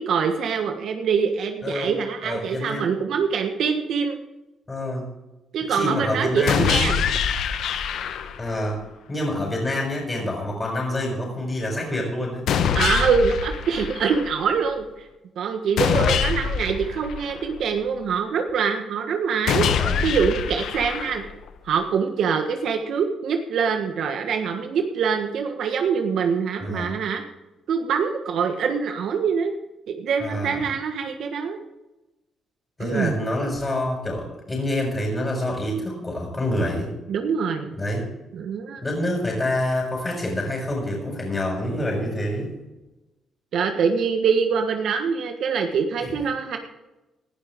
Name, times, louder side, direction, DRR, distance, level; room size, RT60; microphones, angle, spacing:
voice 1, 0.0-4.2 5.5-7.0 12.7-14.8 15.4-21.2 21.6-27.2 27.7-29.5 29.9-31.6 32.8-33.1 37.1-37.7 38.3-38.8 43.5-46.6, right 6 dB, 70° right, 5 dB, 1.4 m, -24 dB
voice 2, 2.2-2.9 4.7-5.0 5.7-6.8 8.4-8.8 9.1-12.5 15.9-16.2 19.8-20.0 26.6-27.0 30.2-30.6 32.8-36.9 37.7-38.1 38.8-42.5 46.0-46.2, left 1 dB, 25° left, -2 dB, 5.8 m, -27 dB
sound 1, 6.5-8.5 12.5-14.5 15.8-17.8 19.5-21.5, left 7 dB, 75° left, 1.0 m, -25 dB
19.0 x 11.5 x 3.7 m, 1.0 s
cardioid pair, 90°, 0 cm